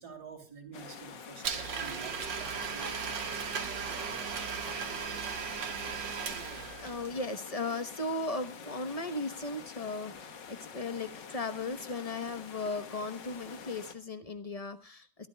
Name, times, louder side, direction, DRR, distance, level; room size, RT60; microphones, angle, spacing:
voice 1, 0.0-5.5, right 5 dB, 60° right, 7 dB, 3.2 m, -50 dB
sound 1, 0.7-13.9, left 6 dB, 75° left, 2.0 m, -47 dB
Domestic sounds home sounds, 1.4-7.1, right 6 dB, 90° right, 2.3 m, -36 dB
voice 2, 6.4-15.3, left 3 dB, 25° left, 9 dB, 0.8 m, -37 dB
23.0 x 13.5 x 2.3 m, 0.31 s
omnidirectional pair, 1.9 m